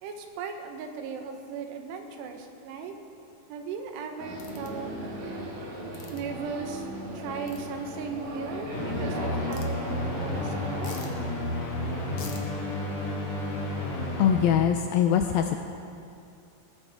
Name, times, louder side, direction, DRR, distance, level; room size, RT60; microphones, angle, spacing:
voice 1, 0.0-2.9 3.5-4.9 6.1-6.9 7.1-10.9, right 5 dB, 90° right, 4 dB, 3.3 m, -37 dB
sound 1, 4.2-11.1, right 1 dB, 60° right, 3.3 m, -37 dB
sound 2, 4.4-4.7 5.9-6.2 7.5-7.6 9.5-9.7 10.8-11.1 12.2-12.4, left 7 dB, 65° left, 2.2 m, -44 dB
sound 3, 8.7-14.4, left 1 dB, 50° left, 2.8 m, -31 dB
voice 2, 14.2-15.6, left 9 dB, 85° left, 5 dB, 2.1 m, -22 dB
20.0 x 13.5 x 3.6 m, 2.5 s
omnidirectional pair, 4.7 m